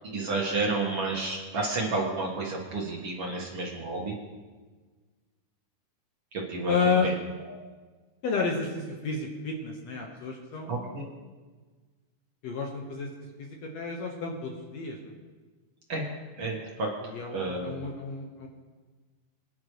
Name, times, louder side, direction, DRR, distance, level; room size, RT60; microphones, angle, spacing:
voice 1, 0.0-4.1 6.3-6.7 7.0-7.1 7.5-7.6 10.7-11.1 15.9-16.0 16.4-16.9 17.3-17.7, right 3 dB, 50° right, -2 dB, 2.1 m, -31 dB
voice 2, 6.7-7.1 8.2-11.1 12.4-13.1 13.4-15.1 17.0-18.5, left 4 dB, 60° left, 1 dB, 2.2 m, -31 dB
22.5 x 10.0 x 3.1 m, 1.4 s
omnidirectional pair, 3.8 m